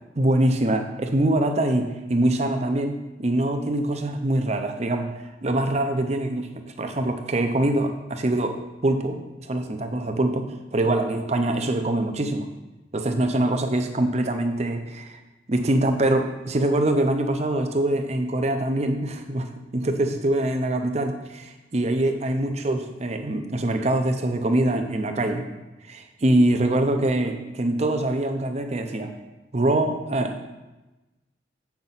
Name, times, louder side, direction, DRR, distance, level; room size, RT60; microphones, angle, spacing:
voice 1, 0.2-5.1 5.4-12.5 12.9-15.2 15.5-25.5 25.9-29.1 29.5-30.4, right 1 dB, 35° right, 6 dB, 0.6 m, -24 dB
7.6 x 5.8 x 4.0 m, 1.1 s
head